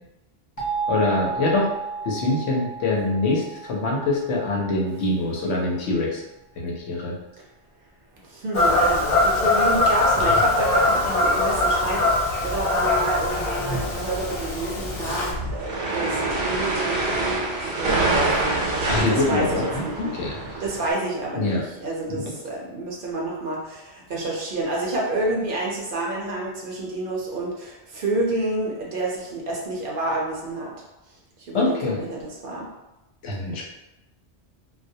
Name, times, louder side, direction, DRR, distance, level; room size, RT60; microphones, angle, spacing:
sound 1, 0.6-5.3, right 4 dB, 25° left, 0.4 m, -33 dB
voice 1, 0.9-1.7 2.0-6.2 6.6-7.1 18.9-20.6 21.3-21.6 22.3-22.4 31.5-32.0 33.2-33.6, left 2 dB, 85° left, -2 dB, 0.9 m, -24 dB
voice 2, 8.2-20.1 20.6-30.7 31.4-31.7 32.1-32.7, right 2 dB, 60° right, -3 dB, 0.7 m, -29 dB
Fowl / Bird vocalization bird call bird song, 8.5-15.3, left 2 dB, 60° left, 0.7 m, -22 dB
sound 2, 15.3-20.9, right 2 dB, 90° right, 0.9 m, -25 dB
2.2 x 2.1 x 2.6 m, 0.95 s
omnidirectional pair, 1.1 m